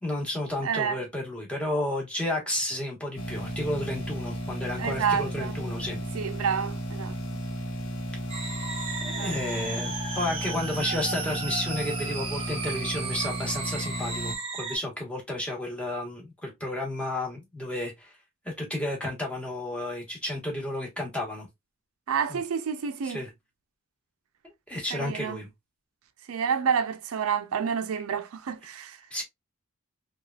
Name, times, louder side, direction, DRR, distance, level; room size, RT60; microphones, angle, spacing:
voice 1, 0.0-6.0 9.0-18.1 18.4-21.5 22.3-22.4 23.0-23.3 24.7-25.5 29.1-29.2, left 1 dB, 5° left, 1.1 m, -32 dB
voice 2, 0.6-1.0 4.8-5.6 6.1-7.2 9.1-9.4 22.1-23.2 24.9-25.4 26.3-29.0, right 7 dB, 90° right, 0.4 m, -29 dB
sound 1, 3.2-14.4, equal, 85° left, 0.8 m, -34 dB
sound 2, 8.3-14.8, right 4 dB, 30° right, 0.6 m, -35 dB
3.2 x 2.3 x 2.2 m
head